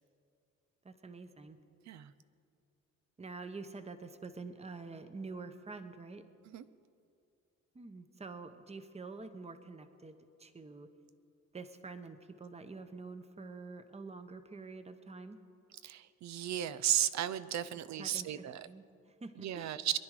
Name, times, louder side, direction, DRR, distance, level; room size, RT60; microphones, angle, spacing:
voice 1, 0.8-1.6 3.2-6.2 7.7-10.9 11.5-15.4 18.0-18.4 18.6-19.7, right 3 dB, 20° right, 9 dB, 1.0 m, -47 dB
voice 2, 15.8-18.7 19.4-20.0, right 11 dB, 65° right, 14 dB, 0.7 m, -34 dB
23.0 x 10.5 x 5.0 m, 2.5 s
cardioid pair, 90°, 30 cm